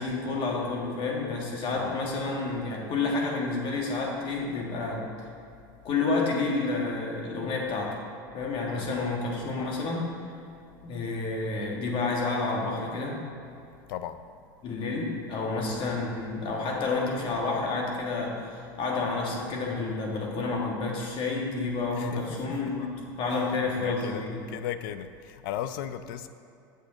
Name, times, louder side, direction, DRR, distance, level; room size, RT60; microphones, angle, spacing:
voice 1, 0.0-5.1 5.8-8.0 8.3-10.1 10.8-13.2 14.6-24.5, left 3 dB, 50° left, -1 dB, 1.7 m, -30 dB
voice 2, 23.7-24.2 24.5-26.3, left 11 dB, 70° left, 11 dB, 0.5 m, -36 dB
7.9 x 6.6 x 3.9 m, 2.6 s
hypercardioid pair, 100°, 11 cm